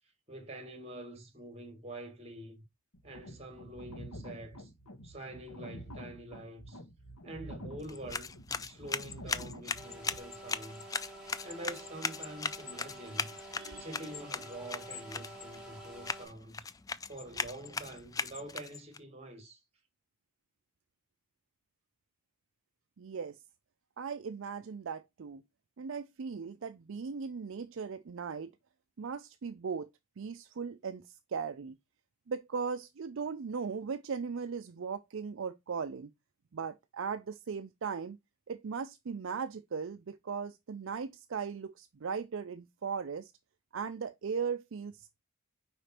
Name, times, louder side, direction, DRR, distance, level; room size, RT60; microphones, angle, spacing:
voice 1, 0.3-2.6 3.0-4.7 5.0-6.8 7.2-8.4 8.6-10.9 11.4-13.3 13.8-16.7 17.1-19.6, right 1 dB, 30° right, 1.9 m, -46 dB
sound 1, 2.9-10.2, equal, 85° left, 1.4 m, -48 dB
sound 2, 7.8-19.0, left 5 dB, 15° left, 0.3 m, -39 dB
sound 3, 9.7-16.3, right 1 dB, ahead, 2.5 m, -49 dB
voice 2, 13.6-13.9 23.0-23.4 24.0-25.4 25.8-28.5 29.0-29.9 30.2-31.8 32.3-36.1 36.5-38.2 38.5-43.3 43.7-45.2, right 5 dB, 60° right, 0.4 m, -38 dB
5.0 x 5.0 x 4.3 m
head